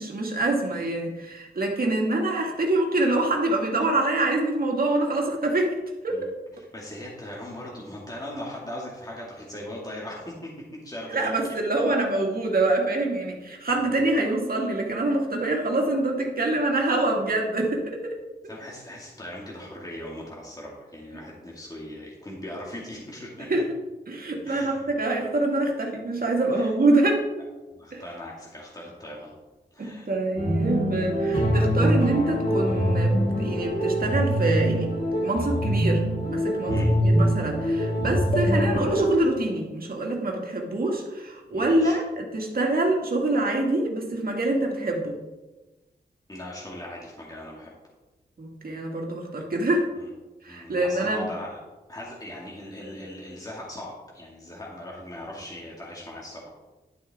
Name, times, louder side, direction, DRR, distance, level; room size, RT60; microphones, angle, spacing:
voice 1, 0.0-5.8 6.0-6.3 11.1-18.1 23.5-23.7 24.1-27.2 27.9-28.0 29.8-34.9 35.2-45.1 48.4-49.9 50.4-51.3, right 2 dB, 55° right, 0 dB, 2.2 m, -25 dB
voice 2, 6.7-10.5 10.8-11.6 13.9-14.0 18.5-23.6 24.5-24.9 26.5-26.7 27.7-29.3 29.7-30.1 36.7-36.9 41.5-42.0 46.3-47.7 50.0-50.1 50.5-51.6 51.9-56.5, left 1 dB, 20° left, -4 dB, 2.3 m, -39 dB
sound 1, 30.3-39.1, equal, 50° left, 3.6 m, -24 dB
11.5 x 7.4 x 3.7 m, 1.1 s
cardioid pair, 70°, 18 cm